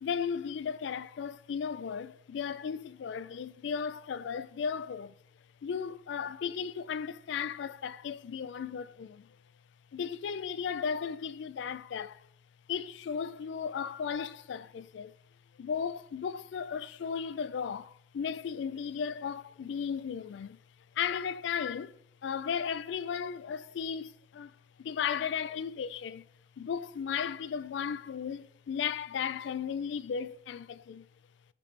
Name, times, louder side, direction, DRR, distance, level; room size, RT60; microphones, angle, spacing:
voice 1, 0.0-5.1 5.6-9.3 9.9-12.2 12.7-15.1 15.6-20.6 21.0-24.5 24.8-26.2 26.6-31.1, left 7 dB, 65° left, 0.3 m, -35 dB
11.5 x 4.1 x 3.3 m
head